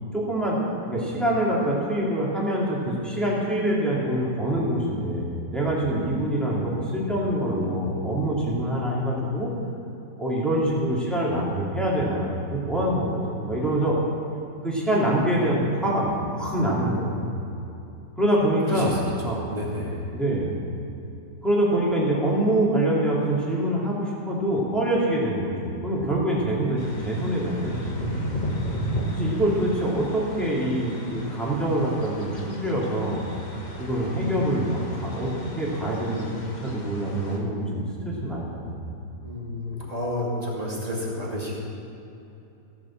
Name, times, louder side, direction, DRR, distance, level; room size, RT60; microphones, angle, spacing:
voice 1, 0.1-0.6 0.9-9.5 10.2-13.9 14.6-17.2 18.2-19.0 19.2-19.4 20.1-20.5 21.4-28.4 29.1-33.2 33.8-36.4 36.6-38.6, right 1 dB, ahead, -6 dB, 2.7 m, -25 dB
voice 2, 18.7-19.0 19.2-20.1 39.2-41.5, left 1 dB, 20° right, -4 dB, 2.5 m, -31 dB
sound 1, 26.8-37.4, equal, 30° left, 1.3 m, -34 dB
15.0 x 7.3 x 7.3 m, 2.9 s
omnidirectional pair, 1.8 m